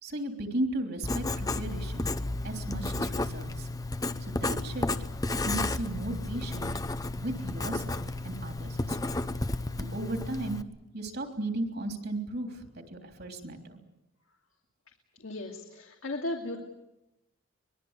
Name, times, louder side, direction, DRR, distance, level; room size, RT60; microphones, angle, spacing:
voice 1, 0.0-2.1 2.4-3.7 4.2-4.9 5.4-6.7 7.1-9.2 9.8-10.6 10.9-13.8, right 1 dB, 55° right, 4 dB, 3.3 m, -36 dB
Writing, 1.0-10.6, left 2 dB, 20° left, 0.8 m, -32 dB
voice 2, 15.2-16.6, left 2 dB, 80° left, 1 dB, 2.7 m, -36 dB
24.5 x 21.5 x 8.2 m, 0.95 s
head